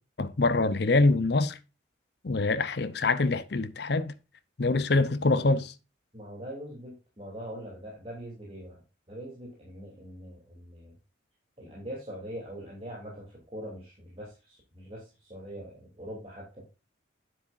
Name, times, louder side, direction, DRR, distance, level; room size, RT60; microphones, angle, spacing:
voice 1, 0.2-1.6 2.2-4.1 4.6-5.7, left 3 dB, 60° left, 0.7 m, -25 dB
voice 2, 6.1-8.8 9.1-10.9 11.6-16.6, equal, 30° right, 3.1 m, -42 dB
9.9 x 7.8 x 2.6 m
head